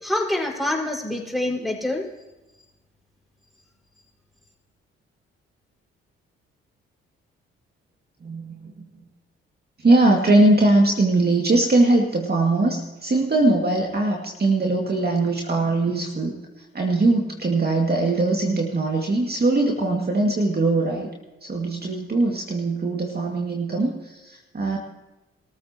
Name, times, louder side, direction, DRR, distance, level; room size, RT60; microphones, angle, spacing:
voice 1, 0.0-2.0, left 1 dB, ahead, 0 dB, 5.2 m, -26 dB
voice 2, 8.2-8.7 9.8-16.4 16.7-21.1 21.4-24.8, right 2 dB, 35° right, 0 dB, 2.2 m, -21 dB
22.5 x 14.0 x 3.0 m, 1.1 s
hypercardioid pair, 45°, 29 cm